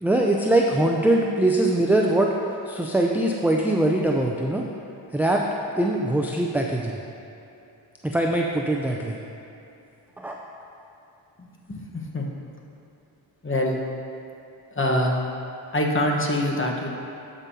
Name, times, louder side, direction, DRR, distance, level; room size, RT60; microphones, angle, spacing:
voice 1, 0.0-2.3 2.7-4.6 5.1-5.4 5.8-7.0 8.0-9.2 10.2-10.4, right 1 dB, 5° right, -1 dB, 0.4 m, -22 dB
voice 2, 11.4-12.3 13.4-13.8 14.7-15.2 15.7-16.9, left 1 dB, 25° left, -1 dB, 1.2 m, -25 dB
12.5 x 5.4 x 2.8 m, 2.8 s
cardioid pair, 60°, 50 cm